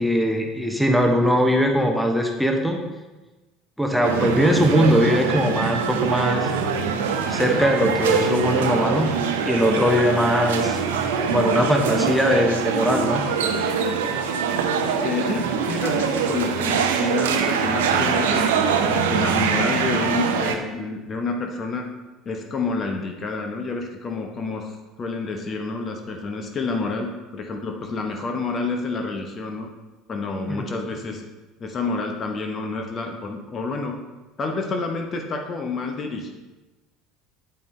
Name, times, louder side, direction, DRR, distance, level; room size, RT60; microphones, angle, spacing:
voice 1, 0.0-2.8 3.8-6.5 7.3-9.1 9.4-10.8 11.3-13.2 30.5-30.7, equal, ahead, 2 dB, 1.1 m, -20 dB
sound 1, 4.0-20.6, right 6 dB, 70° right, 0.6 m, -23 dB
voice 2, 14.7-18.5 18.8-21.9 22.2-29.7 30.1-31.2 31.6-33.9 34.4-36.3, left 3 dB, 35° left, 3 dB, 1.0 m, -28 dB
8.9 x 8.0 x 3.2 m, 1.1 s
figure-of-eight pair, 65°, 0 cm